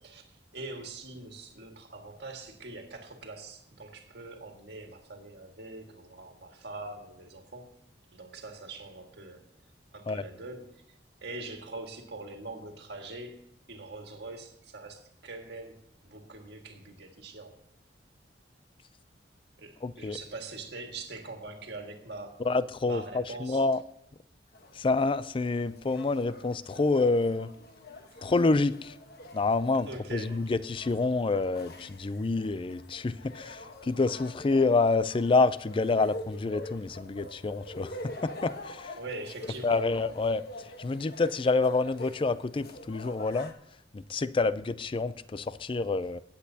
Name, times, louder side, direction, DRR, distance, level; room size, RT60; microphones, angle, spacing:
voice 1, 0.0-7.7 8.1-9.5 9.9-13.4 13.7-17.6 19.6-22.5 22.8-23.6 28.1-28.3 29.7-30.4 39.0-39.9, right 2 dB, 65° right, 4 dB, 1.8 m, -43 dB
voice 2, 19.8-20.2 22.4-23.8 24.8-27.5 28.2-28.9 29.3-37.9 38.2-38.9 39.6-40.4 40.8-43.5 43.9-46.2, left 3 dB, 30° left, 16 dB, 0.4 m, -27 dB
sound 1, 24.5-43.5, left 1 dB, 55° left, 1.2 m, -46 dB
19.0 x 8.2 x 2.8 m, 0.78 s
head